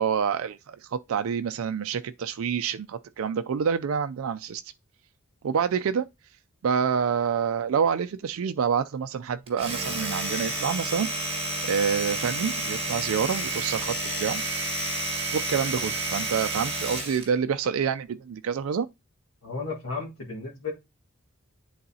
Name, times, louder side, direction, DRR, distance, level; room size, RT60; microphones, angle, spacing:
voice 1, 0.0-4.6 5.4-6.1 6.6-14.4 15.3-18.9, right 7 dB, 75° right, 0.4 m, -27 dB
Domestic sounds home sounds, 9.5-17.3, right 2 dB, 25° right, 1.5 m, -30 dB
voice 2, 19.4-20.7, left 4 dB, 85° left, 1.7 m, -34 dB
10.0 x 3.9 x 2.7 m
head